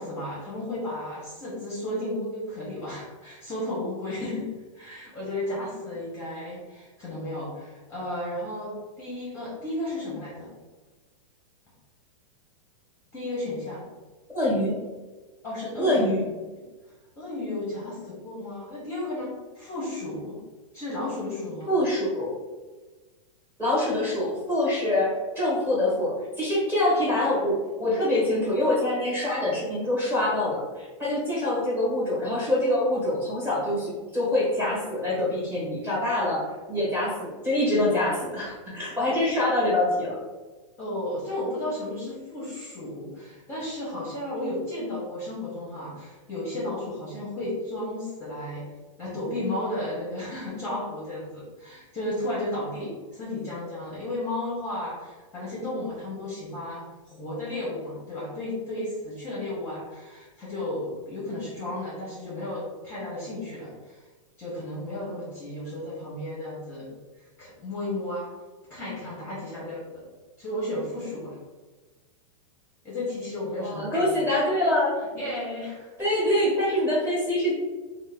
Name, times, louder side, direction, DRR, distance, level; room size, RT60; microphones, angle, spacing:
voice 1, 0.0-10.5 13.1-13.8 15.4-16.2 16.6-16.7 17.2-20.4 20.7-21.7 40.8-48.6 49.0-64.0 64.4-66.9 67.4-68.3 68.7-69.8 70.4-71.4 72.8-74.3 75.1-75.9 76.2-76.4 76.7-76.8, left 1 dB, 15° left, -7 dB, 0.7 m, -33 dB
voice 2, 14.3-14.8 15.8-16.2 21.7-22.3 23.6-36.4 36.7-40.2 73.6-74.9 76.0-77.5, left 1 dB, 10° right, -6 dB, 1.0 m, -25 dB
3.3 x 2.1 x 3.3 m, 1.2 s
supercardioid pair, 165°, 17 cm